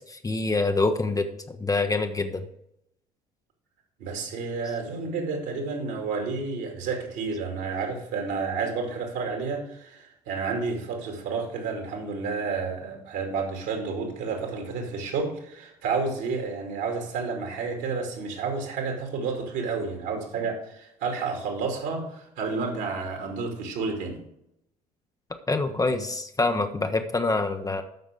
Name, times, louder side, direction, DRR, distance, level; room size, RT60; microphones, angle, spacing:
voice 1, 0.1-2.5 25.5-27.8, left 3 dB, 15° left, 7 dB, 0.9 m, -26 dB
voice 2, 4.0-24.2, right 4 dB, 60° right, 2 dB, 2.6 m, -30 dB
13.5 x 6.2 x 3.6 m, 0.79 s
figure-of-eight pair, 50°, 21 cm